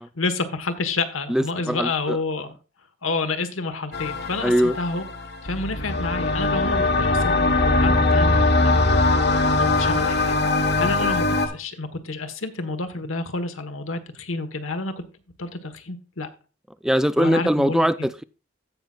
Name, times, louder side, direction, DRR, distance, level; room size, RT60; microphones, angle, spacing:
voice 1, 0.1-2.5 3.0-5.0 5.4-8.7 9.6-15.0 15.4-16.3 17.2-18.1, left 3 dB, 75° left, 8 dB, 1.4 m, -29 dB
voice 2, 1.3-2.2 4.4-4.8 6.7-6.9 10.7-10.9 16.8-18.2, equal, 5° right, 14 dB, 0.3 m, -22 dB
sound 1, 3.9-11.5, left 2 dB, 55° left, 1.3 m, -21 dB
16.0 x 5.9 x 2.4 m, 0.33 s
head